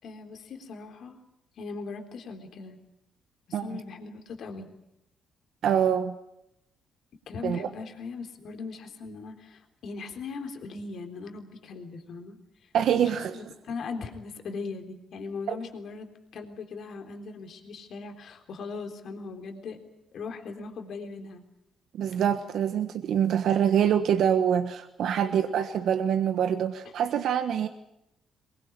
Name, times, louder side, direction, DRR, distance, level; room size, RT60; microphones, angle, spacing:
voice 1, 0.0-1.2 1.6-2.8 3.5-4.7 7.3-12.7 12.9-19.8 20.1-21.4 25.2-25.3, left 4 dB, 65° left, 5 dB, 3.7 m, -39 dB
voice 2, 5.6-6.2 7.4-7.7 12.7-13.4 15.5-15.6 21.9-27.7, right 9 dB, 70° right, 8 dB, 1.3 m, -25 dB
22.5 x 21.5 x 9.4 m, 0.83 s
cardioid pair, 90°, 0 cm